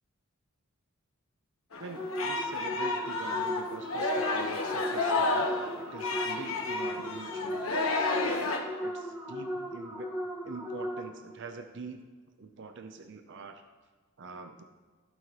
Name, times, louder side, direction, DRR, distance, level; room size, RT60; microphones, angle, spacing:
Singing, 1.7-8.6, left 3 dB, 75° left, 1.1 m, -31 dB
voice 1, 1.8-5.5 5.8-7.7 8.2-8.5 8.8-10.1 10.4-12.0 12.4-13.6 14.2-14.6, right 3 dB, 60° right, 7 dB, 0.6 m, -44 dB
sound 1, 2.0-11.3, equal, 10° right, 1.2 m, -37 dB
14.5 x 5.5 x 3.0 m, 1.4 s
head